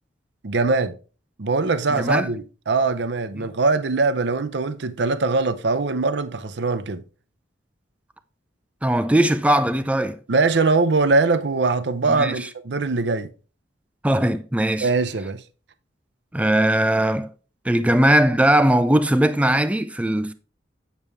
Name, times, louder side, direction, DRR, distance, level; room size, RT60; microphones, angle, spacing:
voice 1, 0.4-1.0 1.4-7.0 10.3-13.3 14.8-15.4, right 3 dB, 60° right, 0.6 m, -22 dB
voice 2, 2.0-2.3 3.4-3.5 8.8-10.2 12.1-12.3 14.0-14.9 16.3-17.3 17.6-20.3, right 1 dB, 5° right, 0.4 m, -19 dB
8.9 x 6.8 x 3.4 m
head